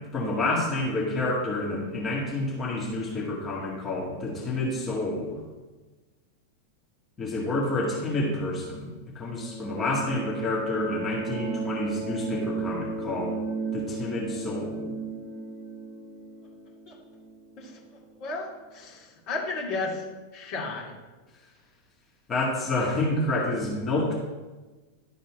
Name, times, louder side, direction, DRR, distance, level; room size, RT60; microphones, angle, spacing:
voice 1, 0.1-5.4 7.2-13.3 13.7-14.9 22.3-24.2, left 2 dB, 20° left, -5 dB, 2.1 m, -29 dB
sound 1, 9.3-17.9, right 4 dB, ahead, 1.4 m, -34 dB
voice 2, 18.2-20.0 20.3-20.9, left 3 dB, 40° left, -3 dB, 2.4 m, -33 dB
12.0 x 4.1 x 4.3 m, 1.2 s
figure-of-eight pair, 90°, 0 cm